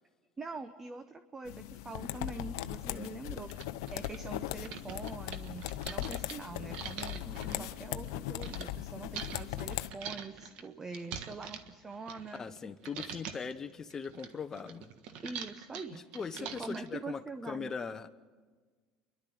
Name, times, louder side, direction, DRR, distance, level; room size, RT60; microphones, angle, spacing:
voice 1, 0.4-3.5 3.9-7.2 7.6-12.5 15.2-16.1 16.4-17.7, right 3 dB, 20° right, 9 dB, 0.9 m, -44 dB
sound 1, 1.5-9.9, left 14 dB, 85° left, 0.7 m, -39 dB
sound 2, 2.4-2.5 3.0-3.1 3.4-8.7 9.1-12.6 12.8-13.5 13.9-16.9, right 7 dB, 65° right, 1.5 m, -44 dB
voice 2, 7.2-7.7 12.3-14.9 15.9-18.1, left 5 dB, 25° left, 11 dB, 1.0 m, -41 dB
30.0 x 12.0 x 7.8 m, 1.5 s
supercardioid pair, 115°, 2 cm